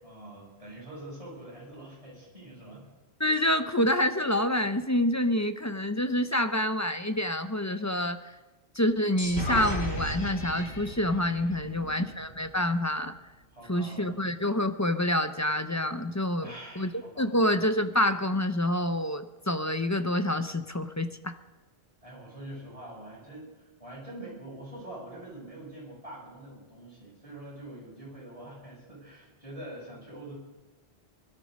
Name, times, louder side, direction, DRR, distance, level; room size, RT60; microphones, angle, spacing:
voice 1, 0.0-2.9 11.5-12.1 13.5-14.2 16.4-17.5 22.0-30.3, right 1 dB, 30° right, -6 dB, 8.0 m, -45 dB
voice 2, 3.2-8.2 8.7-13.1 13.7-16.9 17.2-21.4, left 1 dB, 20° left, 9 dB, 0.6 m, -27 dB
sound 1, 9.2-12.9, equal, 70° left, 3.6 m, -35 dB
21.0 x 12.5 x 5.4 m, 1.1 s
omnidirectional pair, 1.1 m